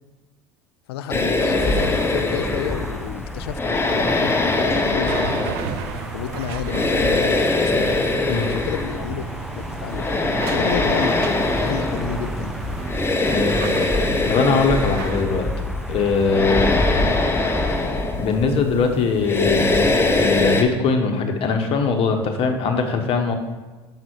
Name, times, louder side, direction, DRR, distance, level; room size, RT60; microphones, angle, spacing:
voice 1, 0.9-5.5 6.1-8.1 8.5-10.1 10.5-11.3 11.6-12.5, left 10 dB, 75° left, 13 dB, 0.4 m, -31 dB
sound 1, 1.1-20.6, left 2 dB, 20° left, 0.9 m, -22 dB
sound 2, 1.4-17.9, equal, ahead, 0.5 m, -35 dB
sound 3, 5.1-15.2, right 11 dB, 70° right, 0.4 m, -35 dB
voice 2, 13.3-13.6 14.3-15.5 15.9-16.7 18.2-23.3, left 4 dB, 45° left, 4 dB, 1.1 m, -21 dB
6.0 x 5.8 x 4.5 m, 1.2 s
hypercardioid pair, 75°, 13 cm